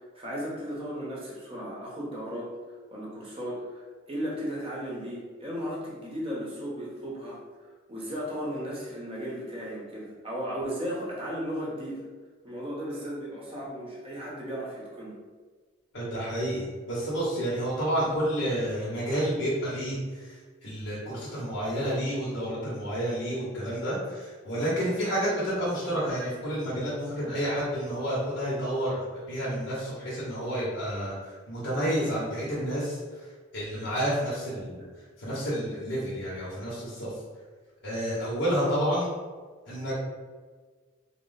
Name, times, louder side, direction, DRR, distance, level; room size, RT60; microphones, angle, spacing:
voice 1, 0.1-2.5 2.9-7.4 7.9-12.0 12.4-15.1, equal, 30° right, -5 dB, 1.0 m, -35 dB
voice 2, 15.9-20.3 20.6-28.9 29.3-34.8 35.2-37.1 37.8-39.1 39.7-39.9, equal, 65° left, -9 dB, 1.2 m, -30 dB
4.1 x 2.1 x 4.0 m, 1.4 s
head